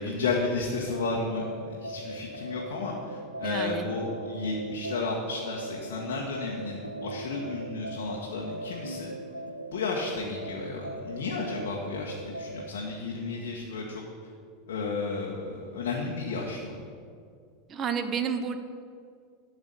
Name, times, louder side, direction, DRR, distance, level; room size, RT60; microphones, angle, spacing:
voice 1, 0.0-1.5 1.8-9.1 9.7-14.0 14.7-16.8, left 3 dB, 60° left, -3 dB, 1.3 m, -32 dB
sound 1, 0.9-12.8, right 1 dB, 90° right, 0.5 m, -40 dB
voice 2, 3.4-3.9 17.7-18.6, right 6 dB, 30° right, 8 dB, 0.9 m, -30 dB
12.0 x 4.8 x 8.0 m, 2.2 s
figure-of-eight pair, 80°, 0 cm